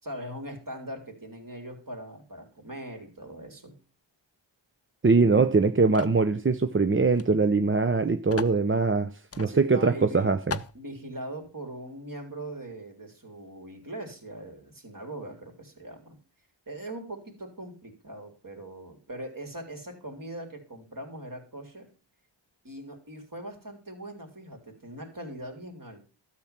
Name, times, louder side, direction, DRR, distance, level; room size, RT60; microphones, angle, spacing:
voice 1, 0.0-3.7 5.3-5.6 9.4-10.3 10.7-16.2 16.7-21.9 22.6-26.0, right 1 dB, 45° right, 3 dB, 3.5 m, -41 dB
voice 2, 5.0-9.1 9.4-10.6, right 4 dB, 25° right, 9 dB, 0.6 m, -22 dB
sound 1, 5.9-6.2 7.1-7.3 7.5-7.6 8.3-8.6 9.3-9.5 10.0-10.1 10.5-10.8, left 5 dB, 30° left, 0.7 m, -36 dB
12.5 x 7.4 x 5.9 m, 0.35 s
wide cardioid pair, 65°, 47 cm